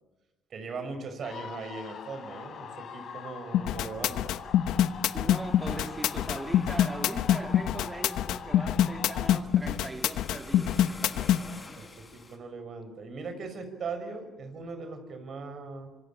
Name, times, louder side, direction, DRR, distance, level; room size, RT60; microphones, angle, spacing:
voice 1, 0.5-4.4 5.7-5.8 6.2-6.4 11.8-15.9, right 4 dB, 50° right, 5.9 m, -39 dB
sound 1, 1.2-9.4, left 7 dB, 60° left, 4.1 m, -43 dB
sound 2, 3.5-11.4, left 11 dB, 80° left, 1.1 m, -25 dB
sound 3, 4.6-12.4, left 3 dB, 25° left, 7.9 m, -50 dB
voice 2, 5.1-11.6, right 2 dB, 15° right, 2.3 m, -40 dB
25.5 x 25.5 x 8.9 m
cardioid pair, 95°, 0 cm